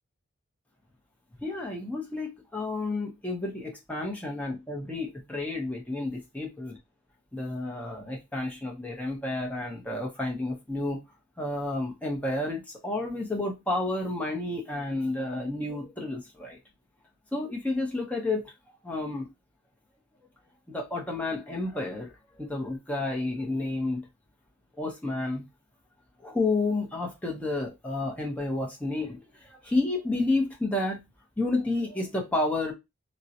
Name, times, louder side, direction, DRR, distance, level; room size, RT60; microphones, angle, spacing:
voice 1, 1.4-6.5 7.3-11.0 11.4-16.6 17.3-18.5 18.8-19.3 20.7-24.0 24.8-25.4 26.2-31.0 31.4-32.7, left 2 dB, 5° left, 0.6 m, -30 dB
3.7 x 2.0 x 2.7 m
head